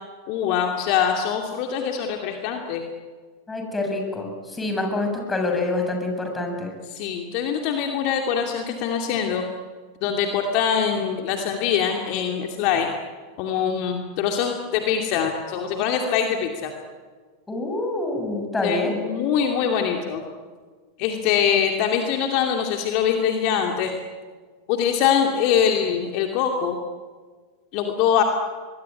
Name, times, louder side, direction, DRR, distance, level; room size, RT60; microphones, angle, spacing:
voice 1, 0.3-2.8 6.9-9.4 10.0-12.9 13.4-16.7 18.6-20.2 21.0-23.9 24.7-26.8 27.7-28.2, left 8 dB, 50° left, 3 dB, 2.5 m, -23 dB
voice 2, 3.5-6.7 17.5-19.0, left 2 dB, 15° left, 3 dB, 7.3 m, -26 dB
24.0 x 22.0 x 9.8 m, 1.5 s
figure-of-eight pair, 90°, 0 cm